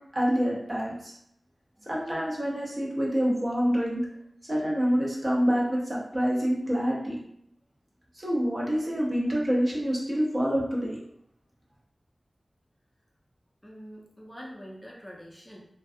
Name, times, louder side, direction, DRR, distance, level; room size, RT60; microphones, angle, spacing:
voice 1, 0.1-1.1 1.9-4.1 4.5-7.2 8.1-11.0, equal, 40° right, -4 dB, 0.7 m, -27 dB
voice 2, 13.6-15.6, equal, 10° left, -4 dB, 0.5 m, -44 dB
2.3 x 2.2 x 2.6 m, 0.75 s
wide cardioid pair, 65°, 0 cm